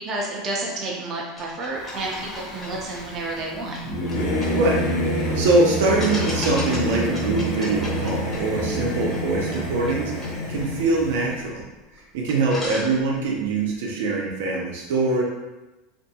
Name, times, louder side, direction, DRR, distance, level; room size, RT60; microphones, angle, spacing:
voice 1, 0.1-3.8, right 2 dB, 35° right, -2 dB, 0.5 m, -30 dB
sound 1, 1.3-5.3 6.0-11.6 12.0-12.1 12.3-13.4, left 1 dB, 15° left, 0.8 m, -38 dB
Singing / Musical instrument, 1.8-11.3, equal, 55° left, 0.5 m, -27 dB
voice 2, 4.4-4.9 5.1-11.6 12.1-15.2, right 3 dB, 80° right, -1 dB, 0.5 m, -23 dB
2.5 x 2.2 x 2.7 m, 1.1 s
supercardioid pair, 150°, 0 cm